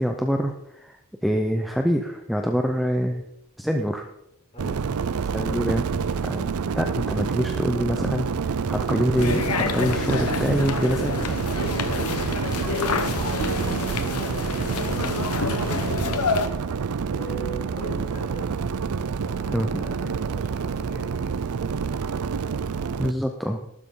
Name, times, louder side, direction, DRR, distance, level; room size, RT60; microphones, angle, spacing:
voice 1, 0.0-3.3 3.6-4.1 5.3-5.9 6.1-11.3 19.5-19.9 23.0-23.7, equal, ahead, 3 dB, 0.7 m, -25 dB
voice 2, 4.5-5.1 12.6-16.5 17.1-18.5 19.2-21.3, equal, 30° left, -3 dB, 5.5 m, -40 dB
sound 1, 4.6-23.1, right 5 dB, 85° right, 0.5 m, -28 dB
sound 2, 9.2-16.5, left 4 dB, 90° left, 1.1 m, -28 dB
13.5 x 12.5 x 3.9 m, 0.82 s
head